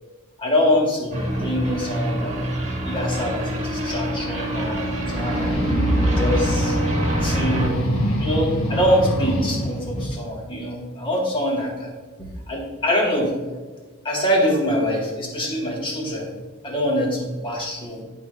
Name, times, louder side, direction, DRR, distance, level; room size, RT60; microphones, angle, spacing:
voice 1, 0.4-2.5 2.8-4.8 5.1-5.5 6.0-6.8 7.2-7.9 8.2-11.9 12.2-13.3 14.0-16.3 16.6-18.0, equal, 25° left, -2 dB, 1.8 m, -24 dB
sound 1, 1.1-7.7, right 1 dB, 35° right, 1.7 m, -26 dB
sound 2, 5.0-10.1, equal, 85° left, 1.5 m, -24 dB
11.5 x 5.2 x 2.5 m, 1.3 s
head